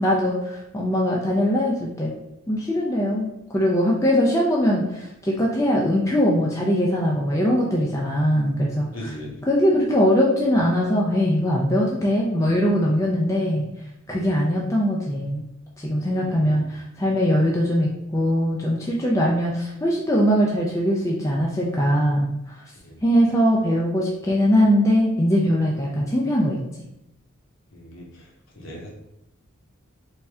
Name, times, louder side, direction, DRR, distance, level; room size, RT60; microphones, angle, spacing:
voice 1, 0.0-2.1 2.5-9.1 9.5-13.7 14.1-15.5 15.8-22.6 23.0-26.6, equal, 15° left, -3 dB, 0.3 m, -21 dB
voice 2, 8.9-9.4 14.1-14.3 16.0-16.8 22.8-23.0 27.7-28.3 28.5-28.9, left 1 dB, 60° left, -2 dB, 0.9 m, -39 dB
3.4 x 2.6 x 3.3 m, 0.84 s
head